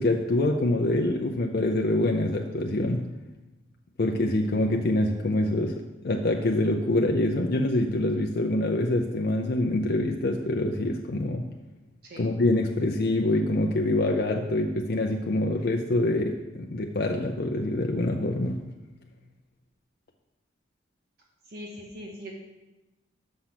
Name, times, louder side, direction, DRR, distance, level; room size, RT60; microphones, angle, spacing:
voice 1, 0.0-3.0 4.0-11.5 12.2-18.6, left 1 dB, 55° left, 2 dB, 0.5 m, -25 dB
voice 2, 21.5-22.3, equal, 55° right, -2 dB, 1.2 m, -41 dB
6.4 x 5.8 x 5.8 m, 1.0 s
head